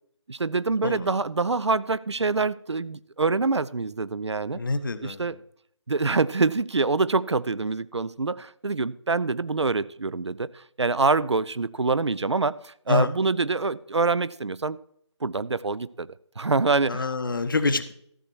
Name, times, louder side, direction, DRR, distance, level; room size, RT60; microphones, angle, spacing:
voice 1, 0.3-4.6 5.0-5.4 5.9-14.8 15.2-16.1 16.4-17.0, right 3 dB, 70° right, 17 dB, 0.5 m, -25 dB
voice 2, 4.5-5.2 12.9-13.1 16.9-17.9, left 3 dB, 45° left, 12 dB, 0.9 m, -26 dB
14.0 x 6.8 x 4.5 m, 0.67 s
figure-of-eight pair, 155°, 15 cm